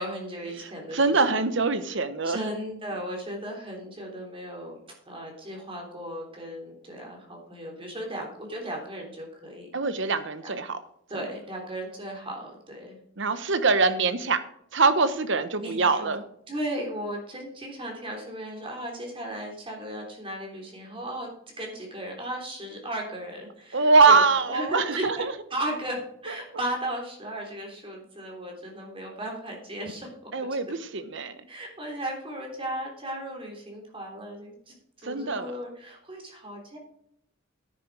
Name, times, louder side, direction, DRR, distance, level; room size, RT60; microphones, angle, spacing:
voice 1, 0.0-1.4 1.9-2.0 2.2-4.8 5.0-9.7 10.0-10.1 10.4-10.6 11.1-13.0 13.4-13.5 15.6-16.1 16.5-21.3 21.6-25.2 25.5-30.3 31.5-36.8, right 1 dB, 30° right, 0 dB, 3.4 m, -36 dB
voice 2, 0.6-2.5 9.7-10.8 13.2-14.4 14.7-16.2 23.7-25.3 26.3-26.4 30.3-31.4 35.0-35.6, right 4 dB, 65° right, 11 dB, 1.1 m, -23 dB
10.5 x 9.1 x 4.8 m, 0.71 s
head